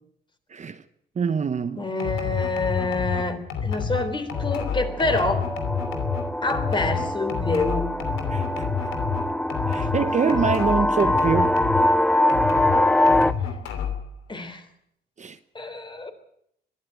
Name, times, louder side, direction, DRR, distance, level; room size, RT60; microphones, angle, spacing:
voice 1, 0.5-0.8 1.2-1.8 8.3-8.7 9.7-11.5 15.2-15.4, right 6 dB, 35° right, 0.9 m, -25 dB
voice 2, 1.8-5.5 6.4-7.9 14.3-14.6 15.5-16.1, left 2 dB, 25° left, 3.6 m, -27 dB
sound 1, 2.0-12.0 12.3-14.1, left 6 dB, 90° left, 3.0 m, -29 dB
sound 2, 4.3-13.3, left 1 dB, 5° left, 0.7 m, -24 dB
22.0 x 13.0 x 9.5 m
cardioid pair, 90°, 20 cm